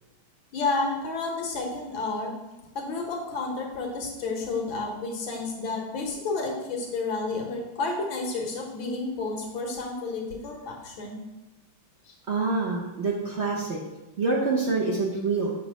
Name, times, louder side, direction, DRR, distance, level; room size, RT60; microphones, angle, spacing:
voice 1, 0.5-2.3 2.8-11.2 12.1-12.2, left 3 dB, 75° left, 0 dB, 1.9 m, -31 dB
voice 2, 12.3-13.8 14.2-15.5, right 3 dB, 55° right, -3 dB, 0.7 m, -26 dB
7.1 x 3.0 x 5.4 m, 1.0 s
omnidirectional pair, 2.2 m